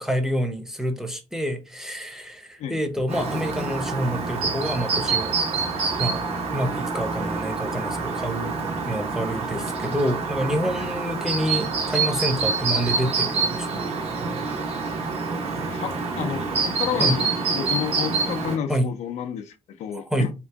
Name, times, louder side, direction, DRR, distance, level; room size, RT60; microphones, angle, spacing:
voice 1, 0.0-5.3 6.0-6.2 6.5-8.6 8.9-13.7 17.0-17.2 18.7-18.9 19.9-20.3, equal, 5° right, 0.6 m, -27 dB
Chirp tweet, 3.1-18.6, right 4 dB, 60° right, 0.9 m, -26 dB
voice 2, 15.7-20.3, left 8 dB, 70° left, 0.4 m, -31 dB
2.9 x 2.6 x 3.3 m
cardioid pair, 105°, 12 cm